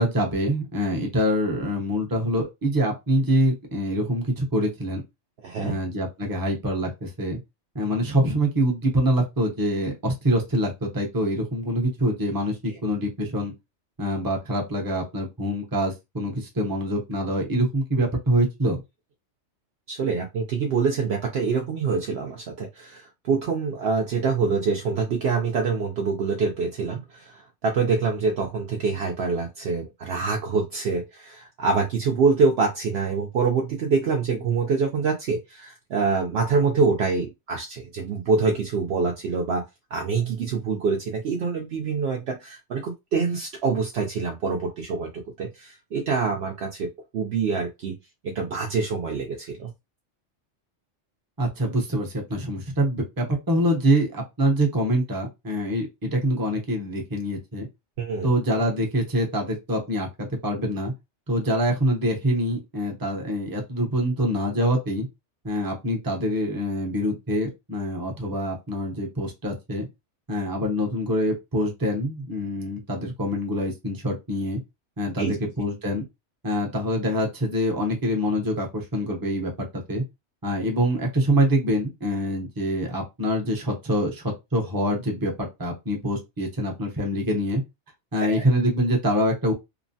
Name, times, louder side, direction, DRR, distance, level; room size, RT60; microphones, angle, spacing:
voice 1, 0.0-5.0 5.6-7.4 7.7-13.5 14.0-18.8 51.4-57.7 58.2-60.9 61.3-65.1 65.4-69.9 70.3-74.6 75.0-76.1 76.4-80.0 80.4-87.6 88.1-89.5, equal, 20° right, 1 dB, 0.6 m, -25 dB
voice 2, 5.4-5.7 12.7-12.8 19.9-47.9 48.2-49.7 58.0-58.3 75.2-75.3 88.2-88.5, right 4 dB, 65° right, 1 dB, 0.8 m, -25 dB
3.0 x 2.1 x 2.6 m, 0.22 s
omnidirectional pair, 1.2 m